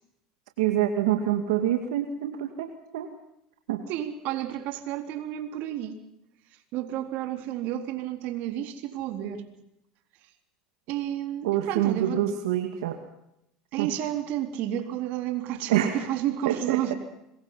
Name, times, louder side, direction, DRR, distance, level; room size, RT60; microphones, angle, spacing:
voice 1, 0.6-3.1 3.7-3.8 11.4-13.0 13.8-13.9 15.7-16.0 16.5-16.9, right 11 dB, 90° right, 5 dB, 2.2 m, -26 dB
voice 2, 3.9-6.0 6.7-9.5 10.9-12.2 13.7-17.0, right 11 dB, 65° right, 6 dB, 3.9 m, -31 dB
26.0 x 23.0 x 5.8 m, 0.81 s
supercardioid pair, 100°, 3 cm